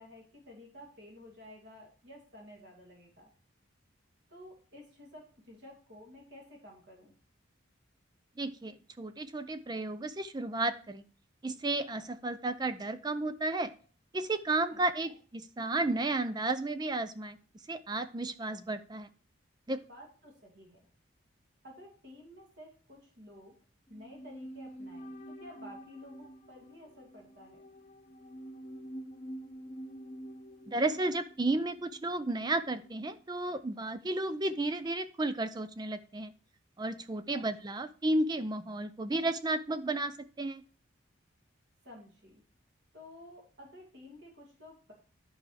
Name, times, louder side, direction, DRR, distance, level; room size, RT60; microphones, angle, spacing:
voice 1, 0.0-3.3 4.3-7.1 14.7-15.2 19.9-20.8 21.6-23.6 23.9-27.6 37.3-37.5 41.8-42.4 42.9-44.9, left 1 dB, 55° right, -1 dB, 2.7 m, -52 dB
voice 2, 8.4-11.0 11.4-13.7 14.1-17.4 17.7-19.1 19.7-19.8 30.7-36.3 36.8-40.6, right 2 dB, 20° right, 12 dB, 0.4 m, -33 dB
sound 1, 23.9-33.2 33.5-33.6, right 1 dB, 30° left, 0.9 m, -48 dB
11.0 x 4.7 x 4.9 m, 0.40 s
head